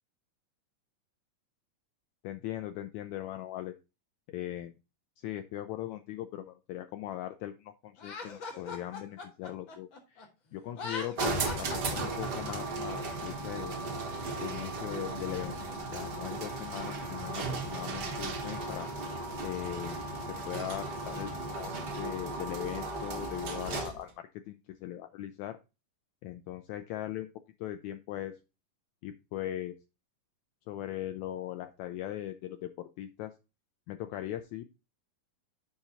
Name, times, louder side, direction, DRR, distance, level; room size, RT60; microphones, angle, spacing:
voice 1, 2.2-3.7 4.3-4.7 5.2-13.7 14.4-15.6 15.9-18.9 19.4-20.0 20.3-25.6 26.2-27.3 27.6-28.4 29.0-29.7 30.7-33.4 33.9-34.7, left 13 dB, 85° left, 8 dB, 1.6 m, -39 dB
Laughter, 8.0-10.3 10.7-12.5, left 4 dB, 50° left, 1.7 m, -40 dB
sound 1, 11.2-24.1, right 3 dB, 55° right, 1.2 m, -36 dB
7.4 x 5.2 x 4.0 m, 0.28 s
omnidirectional pair, 3.9 m